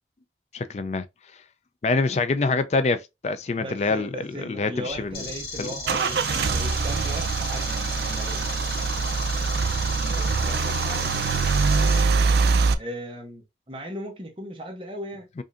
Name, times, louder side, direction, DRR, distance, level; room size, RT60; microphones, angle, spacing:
voice 1, 0.5-1.0 1.8-4.1 4.5-5.2 5.6-5.7, left 3 dB, 40° left, 0.3 m, -25 dB
voice 2, 3.6-8.5 10.4-11.5 12.8-15.4, right 1 dB, 30° right, 1.0 m, -37 dB
Car / Engine starting / Idling, 4.9-12.7, right 4 dB, 70° right, 0.4 m, -24 dB
sound 1, 5.1-12.0, left 3 dB, 65° left, 1.5 m, -36 dB
5.0 x 2.6 x 2.5 m
head